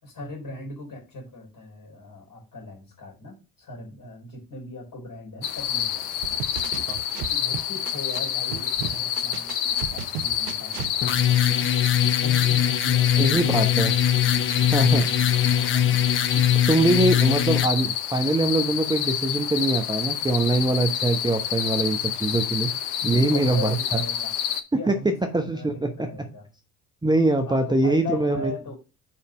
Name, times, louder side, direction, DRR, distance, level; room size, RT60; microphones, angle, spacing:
voice 1, 0.0-6.2 7.3-9.5 9.9-11.7 12.2-16.0 23.0-24.3 24.7-26.5 27.5-28.7, left 2 dB, 45° left, 0 dB, 3.9 m, -39 dB
sound 1, 5.4-24.6, left 10 dB, 70° left, 0.8 m, -28 dB
sound 2, 6.2-8.2 8.5-10.9, right 9 dB, 75° right, 0.6 m, -34 dB
sound 3, 11.0-17.7, left 10 dB, 30° left, 0.5 m, -22 dB
voice 2, 13.2-13.9 14.7-15.0 16.7-22.7 23.0-24.0 24.9-25.0 25.3-26.1 27.0-28.5, right 2 dB, 10° right, 5 dB, 0.9 m, -23 dB
5.0 x 4.2 x 6.0 m, 0.30 s
figure-of-eight pair, 50°, 45 cm